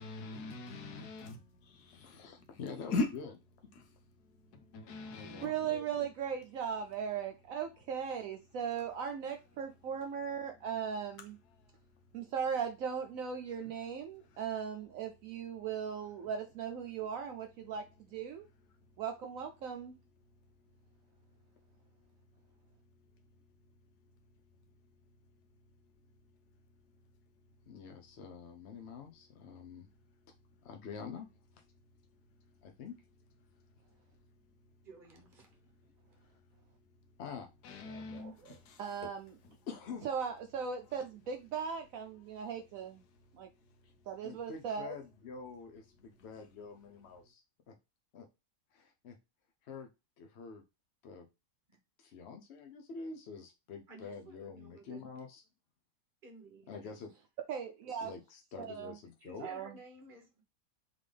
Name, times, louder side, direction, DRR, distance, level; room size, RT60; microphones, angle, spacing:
voice 1, 0.0-1.5 1.8-2.2 2.9-3.1 3.8-3.9 4.5-5.5 37.6-38.8, left 2 dB, 90° left, 1.3 m, -39 dB
voice 2, 1.6-3.3 5.1-6.1 27.7-29.9 30.6-31.3 32.6-33.0 37.2-37.5 39.7-40.1 43.8-43.9 44.2-47.7 48.1-48.3 48.7-49.2 49.6-49.9 50.2-50.6 51.0-51.3 52.0-55.4 56.7-57.1 58.0-59.5, left 5 dB, 60° left, 0.8 m, -47 dB
voice 3, 5.4-11.4 12.1-18.5 19.0-19.9 37.9-39.4 40.0-43.0 43.3-43.5 44.1-44.9 57.5-58.1 58.6-59.0 59.4-59.7, right 7 dB, 70° right, 0.9 m, -38 dB
voice 4, 34.8-35.9 51.7-51.8 53.9-55.1 56.2-57.1 59.2-60.4, right 3 dB, 35° right, 1.2 m, -54 dB
3.7 x 3.6 x 3.2 m
omnidirectional pair, 1.6 m